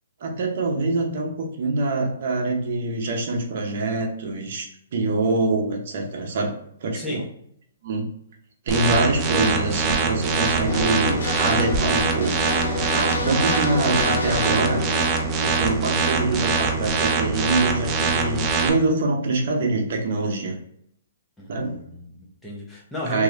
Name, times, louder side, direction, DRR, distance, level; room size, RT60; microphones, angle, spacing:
voice 1, 0.2-4.7 4.9-6.5 6.8-7.2 7.8-8.1 8.7-12.4 12.9-14.8 15.4-20.6 21.5-21.8 23.1-23.2, right 2 dB, 55° right, 1 dB, 0.8 m, -24 dB
voice 2, 6.9-7.3 21.4-23.2, left 1 dB, 5° left, -4 dB, 0.9 m, -34 dB
sound 1, 8.7-18.7, right 4 dB, 25° right, 0.5 m, -23 dB
sound 2, 10.7-16.4, left 3 dB, 80° left, 1.2 m, -30 dB
3.0 x 2.8 x 2.5 m, 0.68 s
hypercardioid pair, 150°, 0 cm